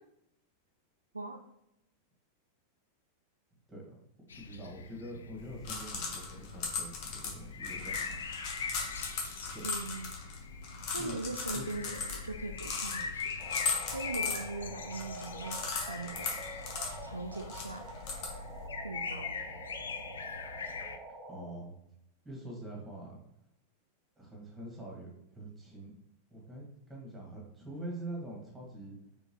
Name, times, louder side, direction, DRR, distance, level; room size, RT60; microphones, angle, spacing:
sound 1, 4.3-21.0, left 5 dB, 70° left, 0.3 m, -42 dB
voice 1, 4.4-8.3 9.5-9.6 10.9-11.2 11.5-11.6 21.3-21.7 22.2-23.2 24.2-25.9 26.3-29.0, right 1 dB, 10° right, -2 dB, 1.5 m, -45 dB
sound 2, 5.4-18.7, left 4 dB, 45° left, 0.9 m, -39 dB
voice 2, 9.6-10.1 10.9-13.3 13.9-15.6 15.9-16.3 17.0-17.9 18.8-19.4, right 3 dB, 80° right, 6 dB, 0.3 m, -40 dB
sound 3, 13.4-21.4, right 2 dB, 25° right, 0.8 m, -47 dB
4.7 x 3.3 x 2.8 m, 0.82 s
figure-of-eight pair, 90°, 0 cm